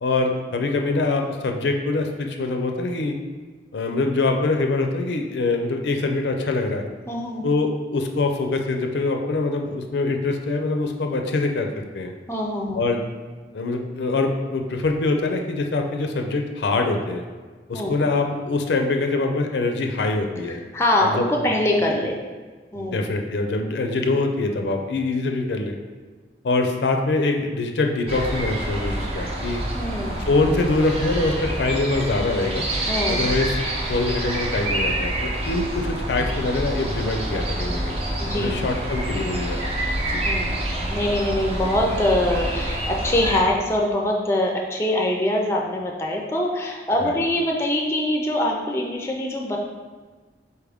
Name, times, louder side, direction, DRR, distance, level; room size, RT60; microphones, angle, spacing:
voice 1, 0.0-3.2 3.7-6.9 7.4-12.1 12.7-13.0 13.5-17.2 17.7-20.6 21.0-21.3 22.8-25.8 26.4-29.6 30.3-32.6 33.1-33.5 33.9-38.0 38.3-39.6 40.1-40.3 47.0-47.2, left 3 dB, 70° left, 4 dB, 0.4 m, -24 dB
voice 2, 7.1-7.4 12.3-12.8 17.7-17.9 20.4-22.2 22.7-23.1 29.7-30.2 32.9-33.3 38.2-38.5 40.2-49.6, left 1 dB, 15° left, 0 dB, 0.4 m, -23 dB
sound 1, 28.1-43.4, right 1 dB, 35° right, 0.6 m, -27 dB
4.3 x 3.5 x 3.4 m, 1.4 s
head